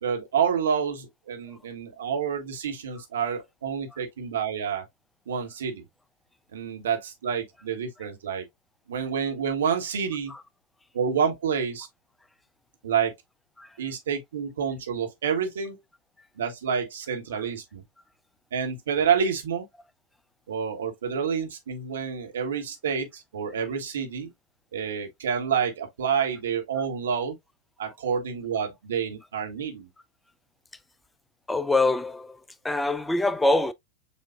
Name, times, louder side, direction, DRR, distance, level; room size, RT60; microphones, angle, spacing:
voice 1, 0.0-4.8 5.3-5.8 6.5-8.4 8.9-10.3 10.9-11.9 12.8-13.1 13.8-15.8 16.4-17.8 18.5-19.7 20.5-24.3 24.7-27.3 27.8-29.9, right 7 dB, 65° right, 1.2 m, -28 dB
voice 2, 31.5-32.4 32.6-33.7, left 2 dB, 10° left, 0.3 m, -24 dB
7.1 x 2.5 x 2.3 m
figure-of-eight pair, 90°, 0 cm